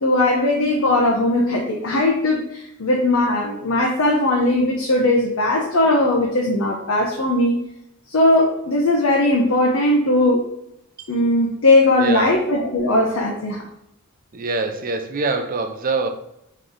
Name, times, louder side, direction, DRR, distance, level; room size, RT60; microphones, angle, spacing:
voice 1, 0.0-7.6 8.1-10.4 11.1-13.6, left 2 dB, 70° left, -2 dB, 0.7 m, -18 dB
voice 2, 12.0-12.3 14.3-16.1, right 3 dB, 40° right, 7 dB, 0.5 m, -24 dB
4.0 x 3.1 x 3.8 m, 0.80 s
head